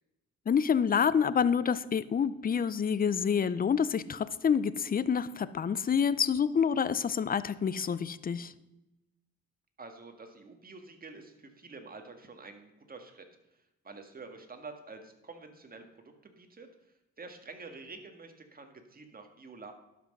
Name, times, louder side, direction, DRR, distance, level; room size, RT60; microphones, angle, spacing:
voice 1, 0.5-8.5, left 7 dB, 30° left, 16 dB, 0.5 m, -28 dB
voice 2, 9.8-13.3 13.8-16.7 17.2-19.7, right 3 dB, 30° right, 5 dB, 1.8 m, -48 dB
12.0 x 6.0 x 5.4 m, 0.96 s
cardioid pair, 90°, 30 cm